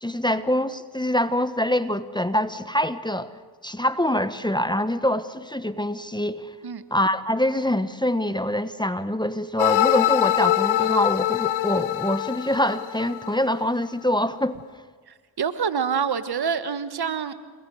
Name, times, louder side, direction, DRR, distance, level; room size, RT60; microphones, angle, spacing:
voice 1, 0.0-3.3 3.6-6.5 6.9-14.6, left 1 dB, 10° left, 12 dB, 1.2 m, -25 dB
sound 1, 9.6-13.6, left 14 dB, 85° left, 0.9 m, -23 dB
voice 2, 15.1-17.3, right 6 dB, 50° right, 12 dB, 1.6 m, -26 dB
30.0 x 20.0 x 6.5 m, 1.5 s
supercardioid pair, 50°, 48 cm